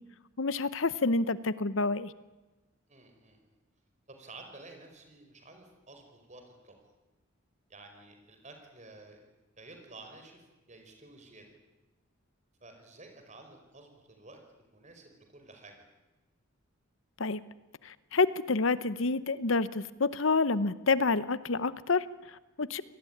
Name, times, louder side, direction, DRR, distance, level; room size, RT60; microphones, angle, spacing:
voice 1, 0.4-2.1 17.2-17.4 17.8-22.8, left 3 dB, 65° left, 16 dB, 0.8 m, -28 dB
voice 2, 2.9-3.5 4.1-6.8 7.7-9.3 9.6-11.5 12.6-15.9, right 2 dB, 35° right, 5 dB, 5.0 m, -52 dB
27.0 x 19.0 x 10.0 m, 1.1 s
head